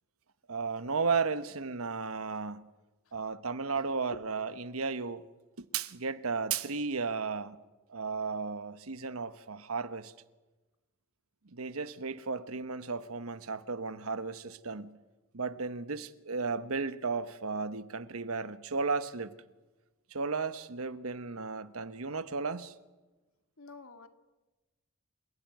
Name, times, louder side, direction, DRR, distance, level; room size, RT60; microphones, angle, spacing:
voice 1, 0.5-2.7 3.1-5.2 5.6-7.6 7.9-10.1 11.4-15.0 15.3-19.3 20.1-22.7, right 4 dB, 80° right, 1.2 m, -34 dB
voice 2, 23.6-24.1, left 2 dB, 75° left, 2.1 m, -49 dB
28.5 x 17.0 x 9.3 m
head